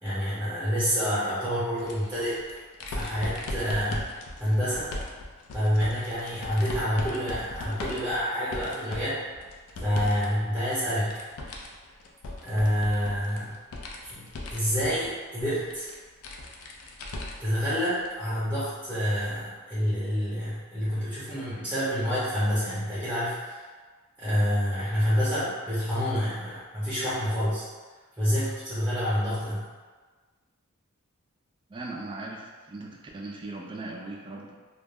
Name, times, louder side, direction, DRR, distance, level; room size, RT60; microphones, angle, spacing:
voice 1, 0.0-2.4 2.9-4.0 4.4-4.9 5.5-9.2 9.8-11.2 12.4-13.5 14.1-14.2 14.5-15.9 17.4-23.6 24.2-27.6 28.2-29.6, equal, 5° right, -12 dB, 0.8 m, -27 dB
sound 1, 1.8-10.3 10.6-17.6 18.0-18.1 19.3-19.4, left 2 dB, 80° left, 0.4 m, -39 dB
voice 2, 31.7-34.6, right 2 dB, 25° right, -1 dB, 0.3 m, -39 dB
2.2 x 2.0 x 3.4 m, 1.4 s
head